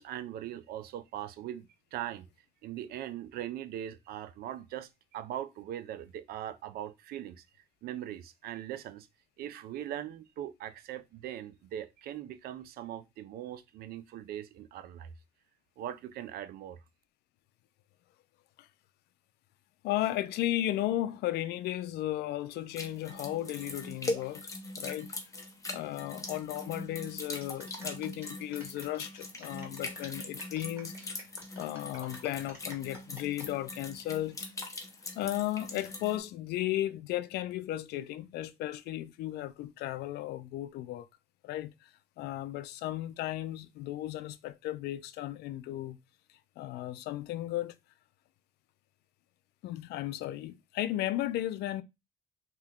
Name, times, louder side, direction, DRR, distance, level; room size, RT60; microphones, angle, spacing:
voice 1, 0.0-2.3 2.6-7.4 7.8-9.1 9.4-15.1 15.8-16.8, right 11 dB, 65° right, 0.4 m, -40 dB
voice 2, 19.8-24.5 24.8-25.1 25.7-31.3 31.6-34.5 35.1-41.1 41.4-41.9 42.2-46.0 46.6-47.7 49.6-51.8, left 14 dB, 75° left, 0.4 m, -35 dB
sound 1, 22.8-36.2, left 2 dB, 20° left, 0.7 m, -41 dB
sound 2, 27.3-33.5 34.0-34.4, right 1 dB, 15° right, 1.3 m, -52 dB
2.8 x 2.2 x 3.5 m
cardioid pair, 110°, 17 cm